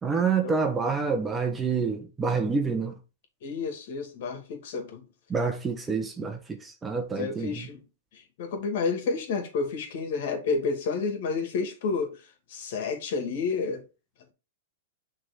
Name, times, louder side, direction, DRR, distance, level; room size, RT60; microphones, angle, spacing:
voice 1, 0.0-3.0 5.3-7.5, right 5 dB, 15° right, 1.1 m, -27 dB
voice 2, 3.4-5.0 7.1-7.8 8.1-13.8, left 4 dB, 60° left, 2.4 m, -30 dB
6.4 x 3.8 x 4.3 m
hypercardioid pair, 140°, 0 cm